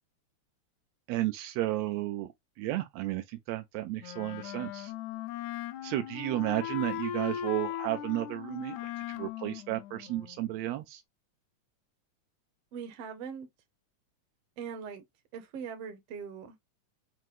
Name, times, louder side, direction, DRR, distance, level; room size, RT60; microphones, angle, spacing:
voice 1, 1.1-2.3 2.6-4.9 5.8-11.0, right 15 dB, 85° right, 1.5 m, -33 dB
Wind instrument woodwind instrument, 4.0-10.6, left 11 dB, 80° left, 1.9 m, -39 dB
voice 2, 12.7-13.5 14.6-15.0 15.3-16.5, right 6 dB, 65° right, 1.6 m, -41 dB
5.9 x 2.1 x 3.2 m
omnidirectional pair, 3.5 m